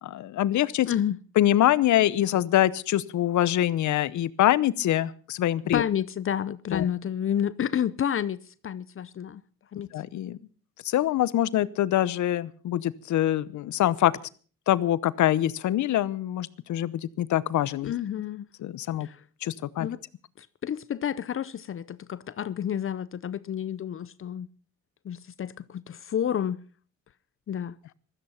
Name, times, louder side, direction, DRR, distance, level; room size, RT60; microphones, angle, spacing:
voice 1, 0.0-0.9 1.4-5.8 6.7-6.9 9.9-10.4 10.8-14.1 14.7-17.9 18.6-19.1 19.4-19.9, left 13 dB, 70° left, 0.9 m, -24 dB
voice 2, 0.9-1.2 5.7-9.4 9.7-9.9 17.8-18.5 19.0-19.2 19.8-20.0 20.4-24.5 25.0-26.6 27.5-27.8, left 9 dB, 45° left, 0.7 m, -30 dB
16.0 x 13.5 x 5.7 m
cardioid pair, 90°, 30 cm